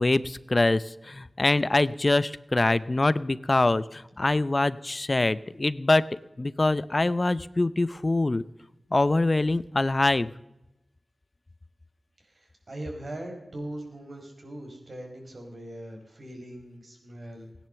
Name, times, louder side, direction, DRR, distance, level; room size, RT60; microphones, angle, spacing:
voice 1, 0.0-8.4 8.9-10.3, left 2 dB, 40° left, 17 dB, 0.6 m, -24 dB
voice 2, 12.2-17.5, right 1 dB, 60° right, 2 dB, 4.7 m, -40 dB
17.0 x 10.5 x 6.8 m, 0.90 s
wide cardioid pair, 60°, 0 cm